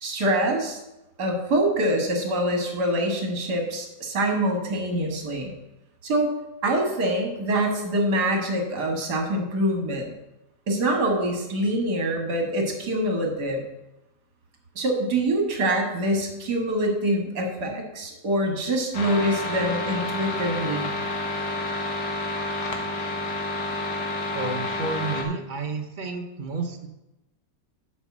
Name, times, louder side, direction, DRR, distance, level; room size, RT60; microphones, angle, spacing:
voice 1, 0.0-0.8 1.2-5.5 6.0-6.3 6.6-10.1 10.7-13.6 14.8-20.9, right 1 dB, 65° right, 2 dB, 2.2 m, -25 dB
sound 1, 18.9-25.2, left 2 dB, 65° left, 1.7 m, -29 dB
voice 2, 24.3-26.9, right 3 dB, 40° right, 4 dB, 0.7 m, -31 dB
7.3 x 5.5 x 7.2 m, 0.94 s
omnidirectional pair, 1.9 m